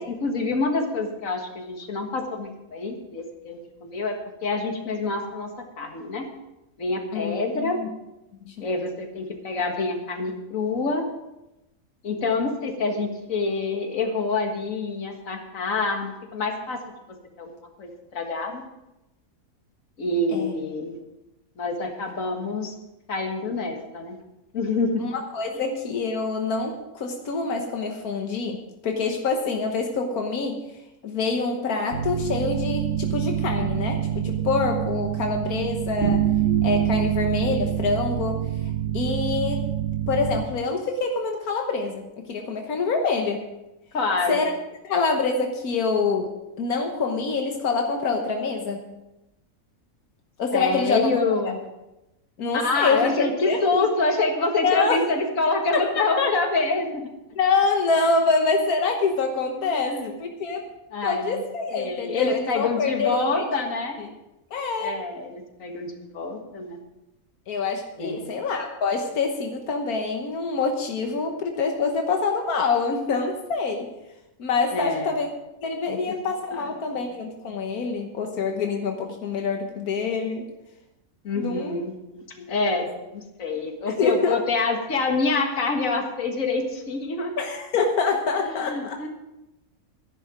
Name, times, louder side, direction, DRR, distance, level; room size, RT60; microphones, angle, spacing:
voice 1, 0.0-4.1 4.4-5.5 5.8-6.3 6.8-7.8 8.6-11.0 12.0-16.8 17.4-17.5 17.8-18.6 20.0-21.0 21.6-22.7 23.1-24.2 24.5-24.9 43.9-44.4 50.5-51.6 52.5-57.0 59.7-60.1 60.9-61.4 61.7-64.0 64.8-65.3 65.6-66.8 68.0-68.3 74.7-75.1 75.9-76.0 76.9-77.0 81.2-87.3 88.5-89.1, left 3 dB, 65° left, 3 dB, 2.1 m, -26 dB
voice 2, 7.1-7.9 8.4-8.6 20.3-20.5 25.0-30.6 31.0-36.2 36.6-38.4 38.9-39.6 40.1-43.5 44.3-44.5 44.8-48.9 50.4-51.5 52.4-53.9 54.6-55.0 55.7-56.3 57.3-60.7 61.0-63.5 64.0-64.1 64.5-65.0 67.5-73.9 74.4-75.3 75.6-80.5 81.4-81.8 82.4-82.5 83.9-84.4 87.4-89.1, left 4 dB, 90° left, 3 dB, 1.6 m, -26 dB
sound 1, 31.9-40.4, right 10 dB, 40° right, 1.0 m, -26 dB
12.5 x 11.0 x 5.0 m, 0.95 s
omnidirectional pair, 1.5 m